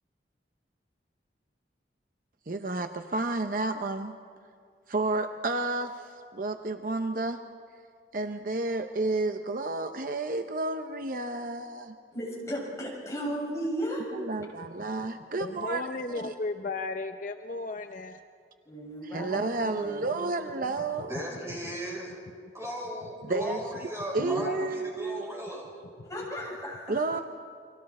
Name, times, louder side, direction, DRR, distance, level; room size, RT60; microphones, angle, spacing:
voice 1, 2.5-4.1 4.9-7.4 8.1-12.0 14.1-15.9 16.2-16.3 19.0-21.3 23.2-23.6 24.1-25.3 26.9-27.2, right 3 dB, 50° right, 7 dB, 0.7 m, -31 dB
voice 2, 12.1-14.1 18.7-20.3 26.0-27.0, equal, 15° left, -4 dB, 6.3 m, -35 dB
voice 3, 15.4-18.2 24.2-24.8, left 2 dB, 45° left, 7 dB, 0.6 m, -34 dB
voice 4, 21.0-22.1 22.5-25.6 26.6-26.7, equal, 15° right, -3 dB, 5.9 m, -37 dB
30.0 x 24.0 x 4.3 m, 2.2 s
head